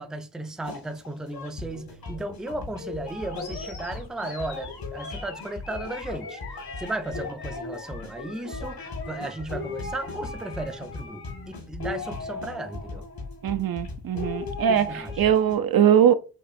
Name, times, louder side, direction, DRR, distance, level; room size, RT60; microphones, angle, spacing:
voice 1, 0.0-6.4 6.8-13.1 14.7-15.4, right 2 dB, ahead, 0.4 m, -35 dB
sound 1, 0.6-15.6, left 3 dB, 65° left, 1.6 m, -37 dB
Animal, 3.3-11.5, left 4 dB, 90° left, 1.4 m, -43 dB
voice 2, 13.4-14.9 15.2-16.1, right 9 dB, 65° right, 0.5 m, -21 dB
6.2 x 2.9 x 2.6 m
wide cardioid pair, 155°, 38 cm